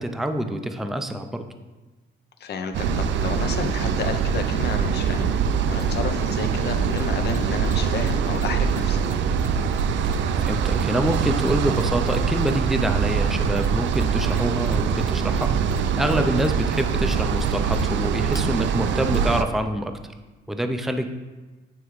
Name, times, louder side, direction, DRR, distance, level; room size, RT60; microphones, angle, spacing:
voice 1, 0.0-1.4 10.2-15.5 15.9-20.1 20.5-21.1, right 1 dB, ahead, 7 dB, 0.4 m, -26 dB
voice 2, 2.4-9.0 16.3-16.5, left 6 dB, 55° left, 7 dB, 0.6 m, -32 dB
sound 1, 2.7-19.4, right 6 dB, 70° right, 0.4 m, -23 dB
Mechanisms, 5.8-5.9 6.9-12.8 13.6-14.4 14.6-18.4 19.1-19.2, left 2 dB, 15° left, 1.0 m, -48 dB
9.2 x 3.5 x 3.1 m, 1.2 s
cardioid pair, 90°, 20 cm